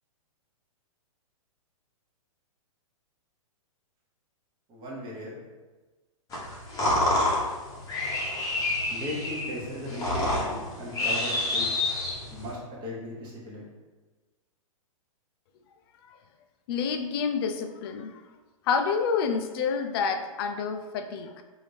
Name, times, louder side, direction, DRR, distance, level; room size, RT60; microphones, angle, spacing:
voice 1, 4.7-5.4 8.9-11.8 12.3-13.7, left 1 dB, 25° right, -5 dB, 1.0 m, -37 dB
sound 1, 6.3-12.5, left 2 dB, 20° left, 0.9 m, -28 dB
voice 2, 16.7-18.2 18.7-21.4, left 6 dB, 45° left, 6 dB, 0.4 m, -28 dB
3.2 x 2.6 x 3.3 m, 1.3 s
hypercardioid pair, 130°, 18 cm